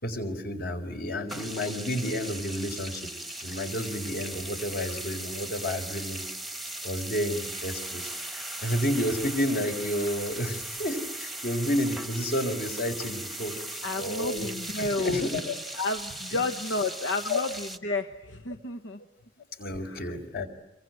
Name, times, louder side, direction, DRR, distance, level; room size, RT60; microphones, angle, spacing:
voice 1, 0.0-3.1 3.4-6.2 6.8-13.5 14.0-14.5 14.8-15.6 16.3-16.5 17.3-17.4 19.6-20.5, equal, 55° left, 6 dB, 4.4 m, -31 dB
sound 1, 1.3-17.8, right 1 dB, ahead, 1.2 m, -38 dB
voice 2, 13.8-15.3 15.8-19.0 19.8-20.1, left 3 dB, 80° left, 8 dB, 1.2 m, -31 dB
27.0 x 23.5 x 9.3 m, 0.97 s
head